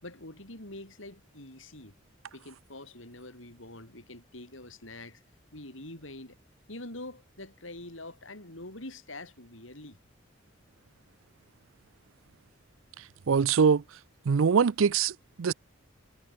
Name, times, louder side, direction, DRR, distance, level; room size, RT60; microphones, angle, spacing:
voice 1, 0.0-1.9 2.3-5.2 5.5-6.4 6.7-10.0, left 2 dB, 75° left, 7.8 m, -45 dB
voice 2, 13.0-13.8 14.3-15.5, right 6 dB, 85° right, 0.5 m, -24 dB
head